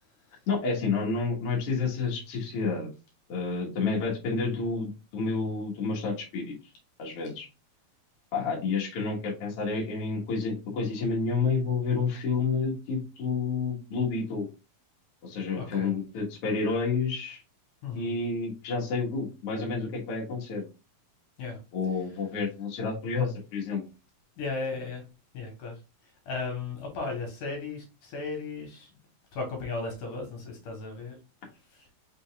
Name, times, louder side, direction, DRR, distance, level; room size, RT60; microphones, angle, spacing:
voice 1, 0.5-2.9 3.3-6.6 7.0-7.5 8.3-14.5 15.2-17.4 17.9-20.6 21.7-23.8, left 4 dB, 50° left, -3 dB, 1.9 m, -29 dB
voice 2, 15.5-15.9 17.8-18.1 21.4-21.6 24.4-25.0 25.3-25.8 26.3-28.9 29.3-31.2 31.7-31.9, left 3 dB, 70° left, 1 dB, 2.6 m, -35 dB
5.7 x 3.9 x 2.4 m, 0.30 s
omnidirectional pair, 4.2 m